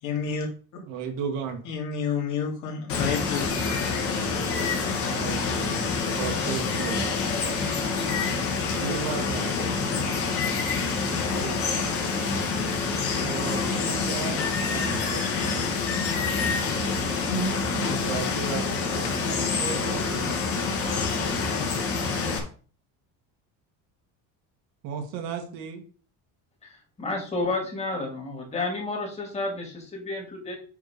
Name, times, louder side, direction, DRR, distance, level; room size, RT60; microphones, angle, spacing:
voice 1, 0.0-0.8 1.6-4.6 13.2-13.3 16.5-18.3, left 5 dB, 55° left, 0 dB, 3.0 m, -33 dB
voice 2, 0.9-1.6 5.1-5.9 6.2-7.0 8.8-9.5 11.3-11.6 13.1-14.4 14.7-15.2 18.1-18.7 18.9-20.5 24.8-25.8, right 6 dB, 70° right, 4 dB, 2.1 m, -34 dB
Water, 2.9-22.4, left 4 dB, 40° left, 2.4 m, -27 dB
voice 3, 26.6-30.6, left 2 dB, 20° left, 0 dB, 2.7 m, -31 dB
9.2 x 3.8 x 5.2 m, 0.40 s
cardioid pair, 165°, 35 cm